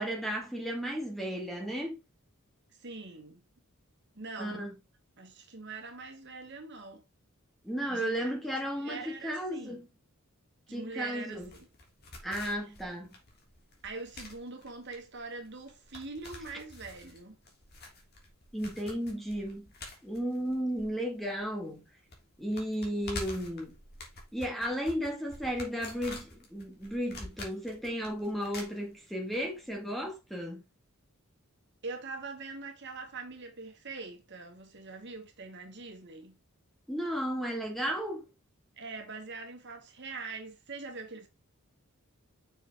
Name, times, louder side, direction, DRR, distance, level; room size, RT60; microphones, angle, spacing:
voice 1, 0.0-2.0 4.4-4.7 7.6-9.0 9.2-9.9 10.7-11.5 12.2-13.1 18.5-19.7 20.0-21.9 22.4-23.7 24.3-30.6 36.9-38.2, equal, ahead, 2.0 m, -34 dB
voice 2, 2.7-3.4 4.1-4.7 5.2-7.0 7.9-8.4 8.7-9.9 10.7-11.7 12.6-12.7 13.8-17.4 31.8-36.4 38.8-41.3, right 3 dB, 55° right, 2.1 m, -43 dB
sound 1, 11.3-21.4 21.7-21.8 22.1-29.4 29.6-29.7, left 2 dB, 45° left, 3.1 m, -47 dB
7.0 x 6.5 x 3.6 m
head